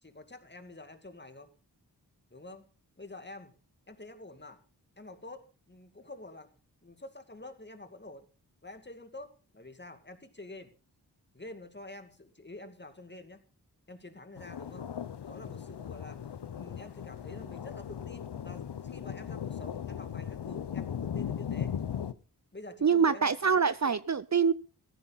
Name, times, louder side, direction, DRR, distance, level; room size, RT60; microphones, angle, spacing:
voice 1, 0.0-1.5 2.3-2.7 3.0-3.5 3.9-4.6 5.0-6.5 6.8-8.2 8.6-10.7 11.3-13.4 13.9-14.9 15.2-16.2 16.5-21.7 22.5-23.3, left 2 dB, 25° left, 8 dB, 2.3 m, -48 dB
sound 1, 14.4-22.1, left 8 dB, 80° left, 0.8 m, -38 dB
voice 2, 22.8-24.5, right 6 dB, 45° right, 16 dB, 0.6 m, -25 dB
17.0 x 14.5 x 4.1 m, 0.35 s
wide cardioid pair, 70°, 40 cm